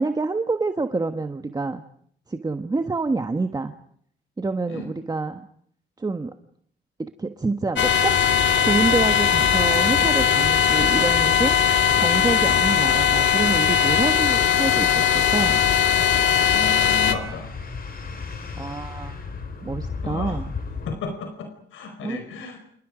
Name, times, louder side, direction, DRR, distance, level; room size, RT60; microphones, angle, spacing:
voice 1, 0.0-1.8 2.3-3.7 4.4-5.4 6.0-6.3 7.0-8.2 8.6-11.6 11.9-15.6 18.6-19.2 19.6-20.5 22.0-22.2, right 3 dB, 20° right, 7 dB, 1.4 m, -27 dB
sound 1, 7.8-17.1, left 8 dB, 65° left, 2.2 m, -19 dB
sound 2, 8.6-20.9, left 4 dB, 50° left, 5.5 m, -36 dB
voice 2, 16.5-17.5 20.0-20.4 20.8-22.6, left 4 dB, 80° left, 6 dB, 4.8 m, -34 dB
29.5 x 27.5 x 5.1 m, 0.64 s
cardioid pair, 90°, 20 cm